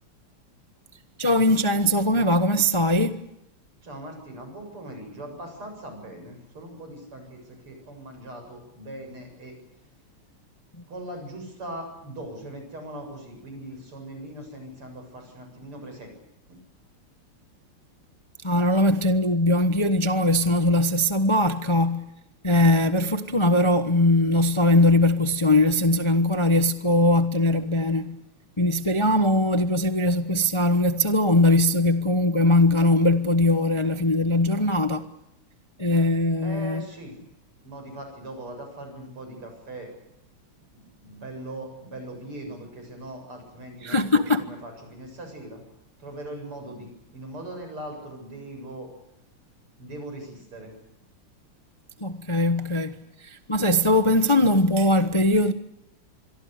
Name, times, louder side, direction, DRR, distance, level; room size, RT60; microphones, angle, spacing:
voice 1, 1.2-3.2 18.4-22.0 22.4-28.2 28.6-35.0 35.8-36.8 43.8-44.5 52.0-52.9 53.2-55.5, left 1 dB, 20° left, 0.7 m, -21 dB
voice 2, 3.8-9.6 10.9-16.1 36.3-37.1 37.6-39.9 40.7-45.6 46.0-48.9 49.8-50.7, right 1 dB, 75° right, 8.4 m, -40 dB
26.0 x 23.5 x 6.7 m
omnidirectional pair, 2.4 m